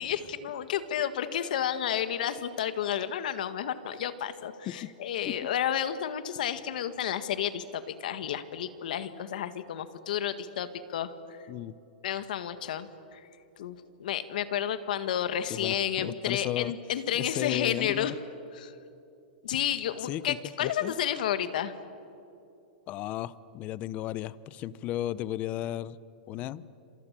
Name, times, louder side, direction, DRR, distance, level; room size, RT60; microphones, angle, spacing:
voice 1, 0.0-11.1 12.0-13.2 13.6-18.1 18.5-18.7 19.4-21.7, left 10 dB, 70° left, 11 dB, 1.8 m, -31 dB
voice 2, 15.5-16.7 17.1-18.2 20.0-20.9 22.9-26.0 26.3-26.6, left 13 dB, 30° left, 18 dB, 0.7 m, -34 dB
28.0 x 26.5 x 7.6 m, 2.7 s
supercardioid pair, 150°, 5 cm